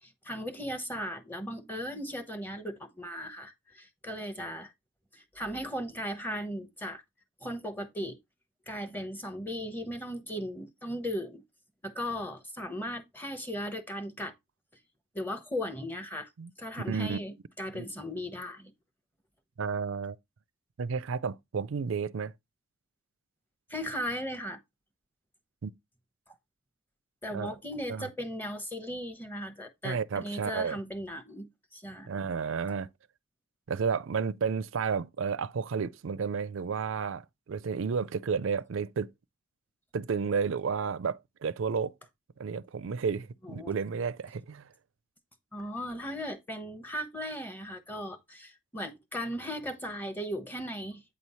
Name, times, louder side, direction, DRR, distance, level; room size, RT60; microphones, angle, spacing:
voice 1, 0.0-4.7 5.1-7.0 7.4-8.2 8.7-11.4 11.8-14.3 15.1-16.3 16.6-18.7 23.7-24.6 26.3-26.4 27.2-32.2 43.4-43.7 45.5-51.0, equal, 10° left, 0.9 m, -37 dB
voice 2, 16.9-17.2 17.7-17.9 19.6-20.2 20.8-22.3 25.6-25.7 27.3-27.5 27.9-28.1 29.8-30.8 32.1-32.9 33.7-39.1 39.9-41.9 42.4-44.7, right 5 dB, 65° right, 0.4 m, -32 dB
8.6 x 3.1 x 5.5 m
head